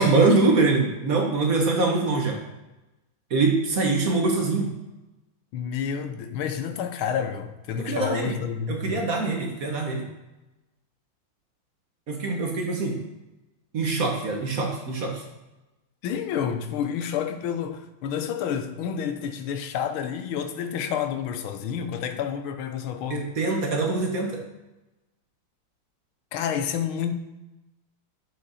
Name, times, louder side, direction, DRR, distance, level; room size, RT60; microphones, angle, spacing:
voice 1, 0.0-2.4 3.3-4.7 7.8-8.4 8.7-10.0 12.1-13.0 13.7-15.2 23.1-24.4, right 3 dB, 50° right, 1 dB, 1.3 m, -23 dB
voice 2, 5.5-9.1 16.0-23.2 26.3-27.1, left 8 dB, 85° left, 8 dB, 1.6 m, -29 dB
7.5 x 5.6 x 4.1 m, 1.0 s
omnidirectional pair, 2.2 m